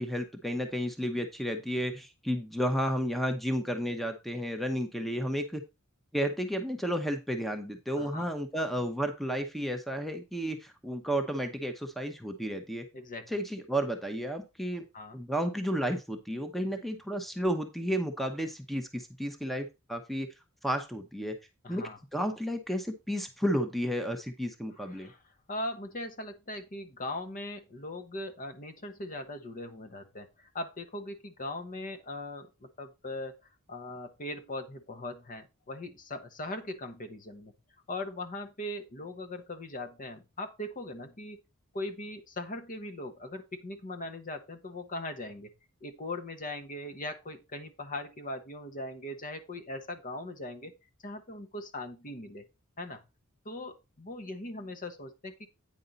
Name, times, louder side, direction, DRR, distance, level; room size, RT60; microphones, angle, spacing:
voice 1, 0.0-5.6 6.1-12.9 13.3-14.8 15.1-20.3 20.6-21.4 21.7-25.1, equal, ahead, 6 dB, 0.9 m, -32 dB
voice 2, 8.0-8.3 12.9-13.4 14.9-15.2 21.6-22.0 24.8-25.2 25.5-33.4 33.7-37.5 37.9-41.4 41.7-45.5 45.8-50.7 51.0-52.5 52.8-53.0 53.4-55.5, left 1 dB, 40° left, 7 dB, 1.0 m, -40 dB
9.0 x 5.4 x 4.0 m, 0.26 s
head